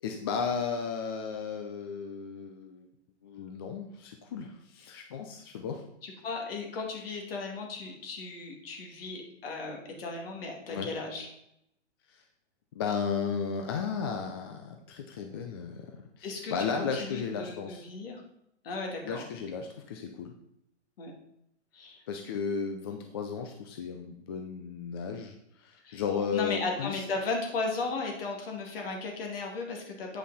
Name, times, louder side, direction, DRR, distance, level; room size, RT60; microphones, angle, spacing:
voice 1, 0.0-2.9 3.2-5.8 10.7-10.9 12.1-12.2 12.7-17.9 19.0-20.3 22.1-27.0, left 6 dB, 20° left, 4 dB, 0.4 m, -34 dB
voice 2, 6.0-11.3 16.2-18.2 18.6-19.2 21.0-21.1 21.7-22.0 25.8-26.0 26.3-30.2, left 3 dB, 50° left, 2 dB, 2.4 m, -36 dB
8.6 x 5.6 x 4.1 m, 0.77 s
hypercardioid pair, 145°, 36 cm